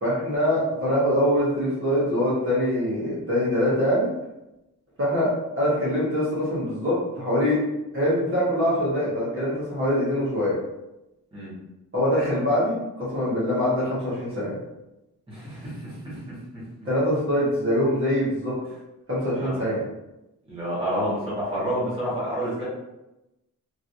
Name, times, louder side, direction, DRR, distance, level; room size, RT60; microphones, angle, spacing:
voice 1, 0.0-4.1 5.0-5.3 5.6-7.6 7.9-10.5 11.9-14.5 16.8-18.5 19.1-19.8, equal, 40° right, -9 dB, 1.2 m, -23 dB
voice 2, 15.3-16.2 19.4-19.6 20.5-22.6, equal, 15° right, -9 dB, 1.2 m, -29 dB
3.1 x 2.7 x 2.6 m, 0.94 s
wide cardioid pair, 170°, 34 cm